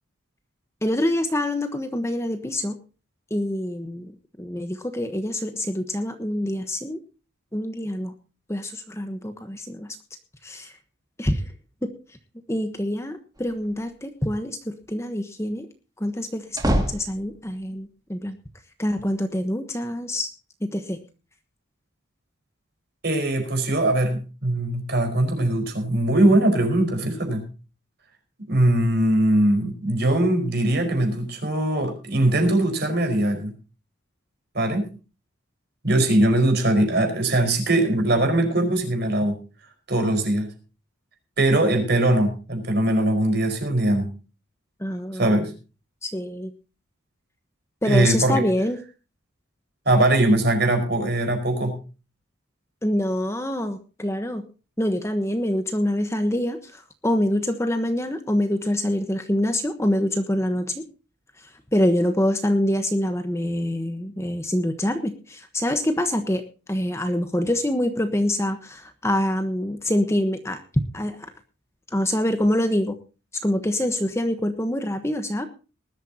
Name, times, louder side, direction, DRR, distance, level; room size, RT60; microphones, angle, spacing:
voice 1, 0.8-2.8 3.3-4.1 4.4-7.0 7.5-8.1 8.5-9.9 10.4-10.7 11.2-11.4 11.8-11.9 12.5-15.7 16.0-18.4 18.8-20.3 20.6-21.0 44.8-45.4 46.0-46.5 47.8-48.8 52.8-54.4 54.8-60.9 61.4-66.4 66.7-70.6 70.9-71.3 71.9-73.0 73.4-75.5, left 1 dB, 15° left, 8 dB, 1.1 m, -25 dB
sound 1, 13.4-13.9 16.1-17.7, equal, 20° right, 2.3 m, -27 dB
voice 2, 23.0-27.4 28.5-33.5 34.5-34.9 35.8-39.4 39.9-40.5 41.4-44.1 45.1-45.5 47.8-48.4 49.8-51.7, right 1 dB, 50° right, 5 dB, 5.0 m, -21 dB
20.0 x 12.5 x 2.9 m, 0.34 s
head